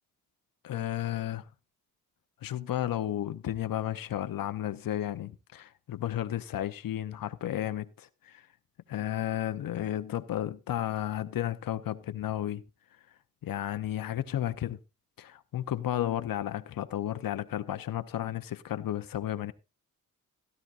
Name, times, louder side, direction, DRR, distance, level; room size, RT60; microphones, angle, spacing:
voice 1, 0.6-1.4 2.4-8.4 8.9-12.6 13.4-14.8 15.2-19.5, left 12 dB, 80° left, 0.7 m, -33 dB
16.0 x 12.5 x 2.4 m
wide cardioid pair, 125°, 34 cm